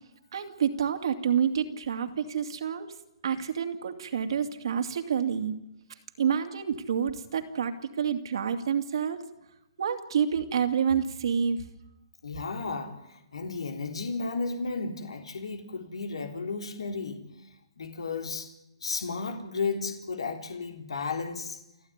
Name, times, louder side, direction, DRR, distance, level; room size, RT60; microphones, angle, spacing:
voice 1, 0.3-2.9 3.2-5.5 6.2-9.2 9.8-11.6, right 7 dB, 65° right, 6 dB, 2.5 m, -28 dB
voice 2, 12.2-17.2 17.8-18.5 18.8-21.6, left 4 dB, 90° left, 5 dB, 3.5 m, -33 dB
29.0 x 12.0 x 9.6 m, 0.89 s
hypercardioid pair, 155°, 3 cm